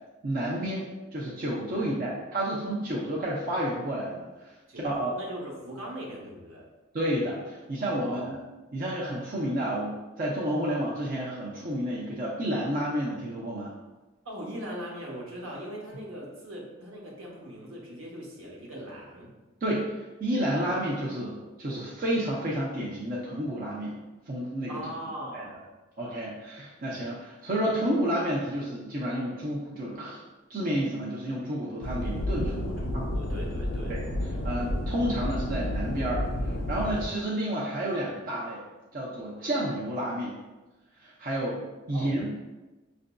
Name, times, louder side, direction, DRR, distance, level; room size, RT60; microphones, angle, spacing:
voice 1, 0.2-0.9 1.1-5.1 6.9-8.4 8.7-13.7 19.6-19.9 20.2-24.0 24.3-24.9 25.3-25.5 26.0-30.2 30.5-32.4 32.9-33.1 33.9-34.0 34.4-38.6 38.9-40.4 41.0-41.6 41.9-42.3, right 1 dB, 40° right, -5 dB, 0.5 m, -30 dB
voice 2, 1.8-2.1 4.7-6.6 8.0-8.3 14.2-19.3 24.7-25.6 32.4-33.9 41.9-42.5, equal, 75° right, -2 dB, 0.9 m, -40 dB
sound 1, 31.8-37.1, left 1 dB, 70° left, 0.5 m, -31 dB
5.8 x 2.6 x 2.2 m, 1.1 s
head